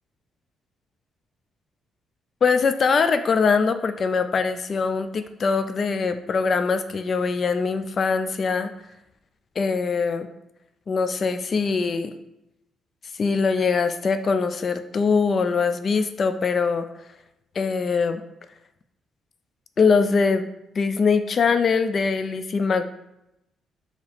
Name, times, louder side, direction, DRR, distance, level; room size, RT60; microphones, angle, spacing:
voice 1, 2.4-8.7 9.6-10.3 10.9-12.1 13.2-16.9 17.6-18.2 19.8-20.5 20.8-22.9, left 5 dB, 45° left, 10 dB, 0.3 m, -22 dB
4.7 x 2.8 x 3.4 m, 0.86 s
cardioid pair, 90°, 0 cm